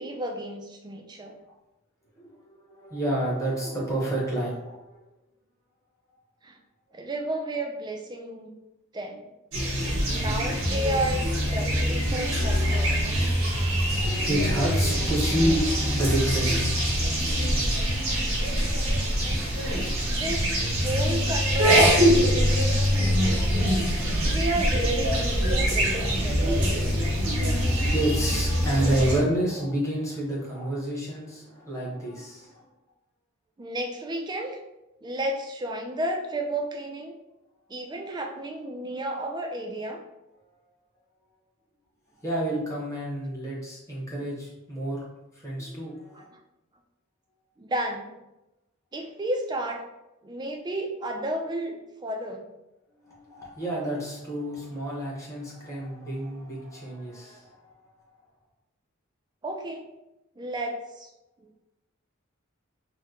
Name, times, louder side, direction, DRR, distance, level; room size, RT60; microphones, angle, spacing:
voice 1, 0.0-1.4 6.4-6.6 6.9-8.5 8.9-9.3 10.1-13.0 20.1-23.7 24.2-26.8 33.6-34.6 35.0-37.1 37.7-40.0 47.6-48.1 48.9-49.8 50.2-52.5 59.4-59.8 60.4-61.1 61.4-61.5, right 1 dB, 20° right, 2 dB, 0.4 m, -32 dB
voice 2, 2.1-5.0 12.3-12.7 13.3-17.2 24.0-24.4 26.4-26.5 27.0-32.6 42.2-45.0 45.3-46.3 53.0-57.8, right 1 dB, 15° left, -6 dB, 0.9 m, -30 dB
sound 1, 9.5-29.2, equal, 80° right, 1.0 m, -24 dB
2.9 x 2.1 x 3.6 m, 0.94 s
head